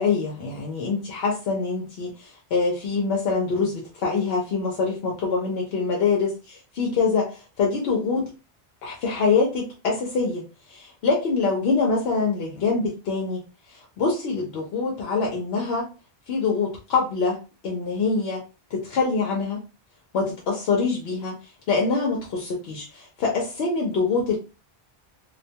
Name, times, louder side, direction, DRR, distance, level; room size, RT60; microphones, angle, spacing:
voice 1, 0.0-8.3 8.8-13.4 13.7-15.9 16.3-17.4 17.6-18.4 18.7-19.6 20.1-21.4 21.7-24.4, left 4 dB, 85° left, -1 dB, 0.9 m, -25 dB
2.3 x 2.2 x 2.7 m, 0.31 s
omnidirectional pair, 1.0 m